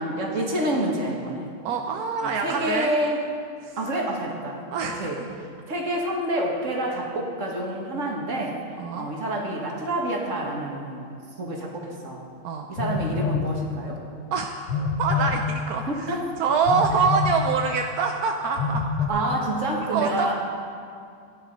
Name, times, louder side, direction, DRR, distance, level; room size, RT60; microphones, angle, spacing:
voice 1, 0.0-1.5 2.2-3.2 3.8-5.2 5.7-8.6 8.9-12.3 12.7-14.0 15.9-16.3 19.1-20.3, right 1 dB, 40° right, -1 dB, 2.0 m, -28 dB
voice 2, 1.6-2.9 3.6-3.8 4.7-5.1 8.8-9.1 12.4-12.7 14.3-18.8 19.9-20.3, right 5 dB, 65° right, 3 dB, 0.9 m, -25 dB
Telephone, 12.8-13.5 14.7-15.4 16.7-17.4 18.6-19.1, left 5 dB, 65° left, 1.6 m, -26 dB
15.0 x 10.0 x 5.4 m, 2.3 s
omnidirectional pair, 2.2 m